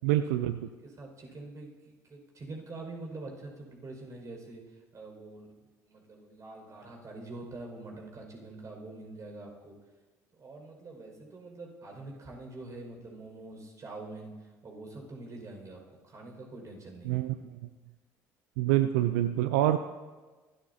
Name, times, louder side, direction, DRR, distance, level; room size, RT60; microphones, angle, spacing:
voice 1, 0.0-0.7 17.0-17.3 18.6-19.8, right 13 dB, 75° right, 11 dB, 0.5 m, -26 dB
voice 2, 0.8-5.5 5.9-9.8 10.3-17.2, right 2 dB, 40° right, 1 dB, 5.6 m, -45 dB
25.5 x 13.0 x 2.8 m, 1.3 s
hypercardioid pair, 60°, 9 cm